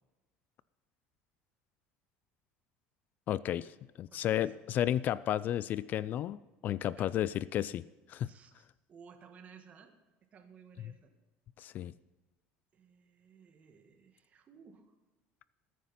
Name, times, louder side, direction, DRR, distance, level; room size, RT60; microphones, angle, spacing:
voice 1, 3.3-3.7 4.0-8.3 11.6-11.9, left 11 dB, 45° left, 18 dB, 0.3 m, -33 dB
voice 2, 4.1-4.6 6.8-7.1 8.3-9.9 10.3-11.1 12.7-15.0, right 6 dB, 35° right, 6 dB, 1.6 m, -57 dB
19.5 x 9.4 x 4.2 m, 1.1 s
cardioid pair, 125°, 4 cm